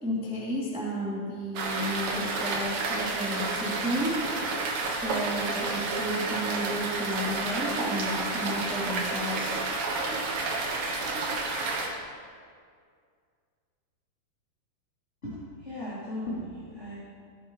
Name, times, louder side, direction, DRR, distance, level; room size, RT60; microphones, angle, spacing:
voice 1, 0.0-4.1 4.4-9.6, equal, ahead, -8 dB, 1.7 m, -33 dB
sound 1, 1.6-11.9, right 3 dB, 60° right, 2.3 m, -30 dB
voice 2, 15.2-17.0, left 1 dB, 20° left, -10 dB, 2.5 m, -37 dB
19.5 x 9.9 x 3.1 m, 2.1 s
omnidirectional pair, 4.7 m